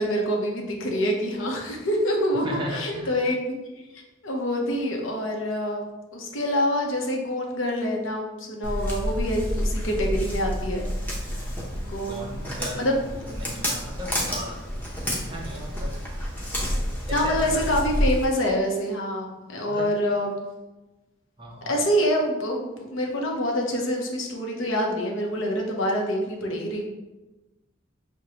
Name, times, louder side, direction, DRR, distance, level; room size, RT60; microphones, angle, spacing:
voice 1, 0.0-3.4 3.9-10.9 11.3-11.4 11.7-12.4 12.7-13.0 17.1-20.3 21.7-26.9, equal, 80° left, 0 dB, 0.8 m, -26 dB
voice 2, 2.4-3.2 11.2-11.6 12.0-14.6 15.1-16.0 17.1-17.6 19.7-20.0 21.4-21.8, right 1 dB, 25° right, -1 dB, 0.7 m, -36 dB
Walk footsteps, 8.6-18.2, equal, 10° left, 0.7 m, -29 dB
6.3 x 2.2 x 2.9 m, 1.1 s
head